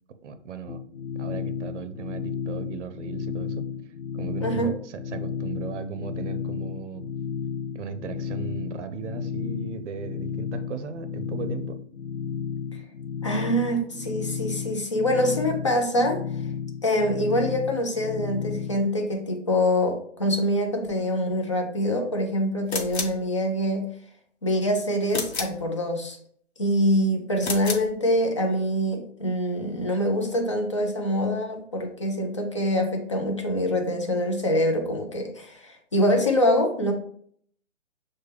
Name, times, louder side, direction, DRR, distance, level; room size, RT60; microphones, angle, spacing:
voice 1, 0.2-0.8 1.2-3.7 4.1-7.1 7.7-11.8, right 5 dB, 65° right, 10 dB, 0.6 m, -36 dB
sound 1, 0.7-18.9, left 7 dB, 90° left, 0.5 m, -33 dB
voice 2, 4.4-4.7 12.7-12.8 13.2-16.2 16.8-23.9 24.4-26.2 26.6-36.9, equal, 25° left, 2 dB, 0.4 m, -25 dB
sound 2, 22.7-23.2 25.1-25.6 27.4-27.9, left 4 dB, 55° left, 1.0 m, -31 dB
6.3 x 2.2 x 3.3 m, 0.63 s
hypercardioid pair, 155°, 38 cm